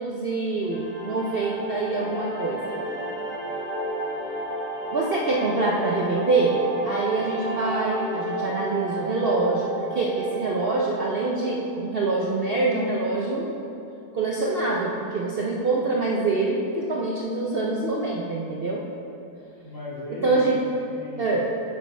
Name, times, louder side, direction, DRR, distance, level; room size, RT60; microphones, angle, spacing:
voice 1, 0.0-2.8 4.9-13.5 14.1-18.8 20.2-20.6 21.2-21.4, right 3 dB, 75° right, -3 dB, 0.5 m, -25 dB
sound 1, 0.6-11.7, right 1 dB, 30° right, 1.6 m, -32 dB
voice 2, 19.6-21.4, left 1 dB, 40° left, -6 dB, 1.6 m, -37 dB
9.3 x 6.6 x 3.3 m, 2.7 s
omnidirectional pair, 1.9 m